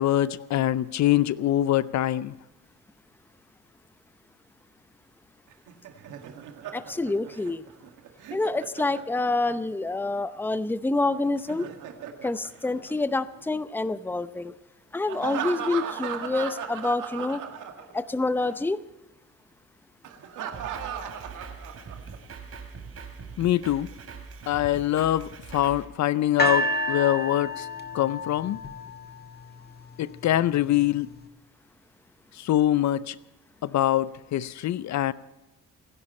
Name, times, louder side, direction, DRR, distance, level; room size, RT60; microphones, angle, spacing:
voice 1, 0.0-2.3 23.4-23.9 24.5-27.7 27.9-28.6 30.0-31.1 32.3-33.2 33.6-35.1, left 13 dB, 65° left, 17 dB, 0.6 m, -24 dB
Laughter, 5.5-9.6 11.2-13.4 15.1-18.1 18.4-18.6 20.0-22.2, right 8 dB, 85° right, 1.9 m, -37 dB
voice 2, 6.7-7.6 8.3-11.7 12.2-14.5 14.9-17.4 17.9-18.8, left 2 dB, 5° left, 13 dB, 0.7 m, -27 dB
Drum kit, 20.5-25.9, right 5 dB, 50° right, 3.3 m, -42 dB
sound 1, 26.4-29.6 30.3-30.4, equal, 30° left, 1.5 m, -29 dB
27.0 x 11.0 x 4.3 m, 1.0 s
cardioid pair, 90°, 30 cm